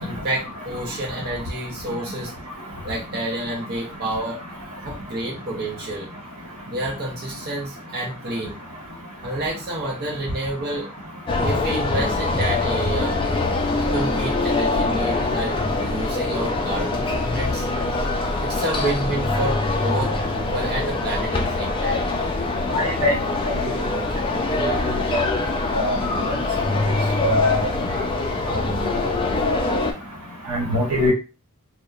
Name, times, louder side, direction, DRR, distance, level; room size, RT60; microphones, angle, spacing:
voice 1, 0.0-2.3 2.8-4.4 4.8-6.1 6.7-8.6 9.2-10.9 11.4-13.2 13.7-17.7 18.4-22.0, right 1 dB, 45° right, -3 dB, 0.7 m, -29 dB
sound 1, 11.3-29.9, left 2 dB, 25° left, 0.3 m, -24 dB
voice 2, 22.7-23.1 23.8-23.9 24.6-24.7 25.1-25.2 25.7-26.0 27.2-27.6 30.5-31.1, left 1 dB, 85° right, 0 dB, 0.9 m, -21 dB
2.8 x 2.1 x 2.3 m, 0.30 s
head